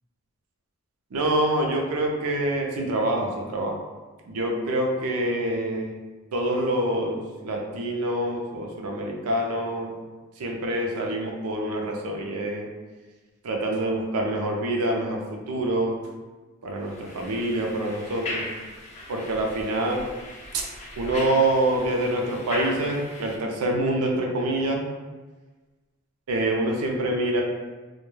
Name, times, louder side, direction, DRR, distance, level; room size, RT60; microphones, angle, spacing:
voice 1, 1.1-3.8 4.3-6.0 6.3-9.9 10.4-12.7 13.4-15.9 16.6-18.4 19.1-20.0 20.5-20.6 21.0-24.8 26.3-27.4, right 1 dB, 90° right, 0 dB, 0.5 m, -26 dB
sound 1, 16.8-23.4, left 1 dB, 30° left, 0.3 m, -38 dB
2.2 x 2.2 x 3.1 m, 1.3 s
head